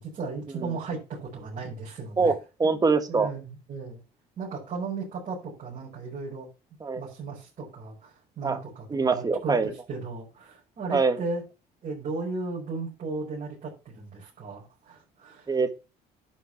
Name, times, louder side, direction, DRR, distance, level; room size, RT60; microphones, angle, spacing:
voice 1, 0.0-2.3 2.6-2.8 3.1-4.0 4.4-6.5 7.0-11.4 11.8-15.5, right 4 dB, 50° right, -6 dB, 5.7 m, -36 dB
voice 2, 2.2-3.3 6.8-7.1 8.4-8.6 8.9-9.7 10.9-11.2 15.5-15.8, right 4 dB, 20° right, 9 dB, 1.6 m, -24 dB
11.5 x 5.3 x 5.6 m, 0.30 s
cardioid pair, 110°, 17 cm